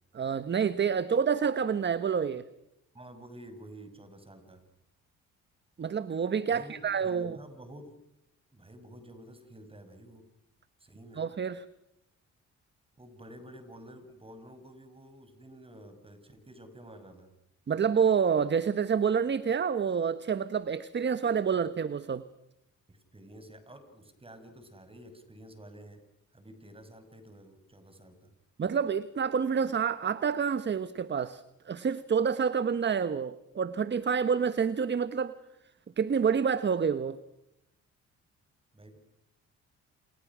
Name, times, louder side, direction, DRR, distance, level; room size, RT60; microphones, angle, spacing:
voice 1, 0.1-2.4 5.8-7.4 11.2-11.6 17.7-22.2 28.6-35.3 36.0-37.2, right 6 dB, 35° right, 1.1 m, -28 dB
voice 2, 2.9-4.6 6.5-7.9 8.5-10.3 10.8-11.2 13.0-17.3 22.9-26.0 26.3-28.3 38.7-39.0, right 1 dB, 20° right, 6.4 m, -50 dB
29.5 x 27.5 x 6.2 m
cardioid pair, 90°, 30 cm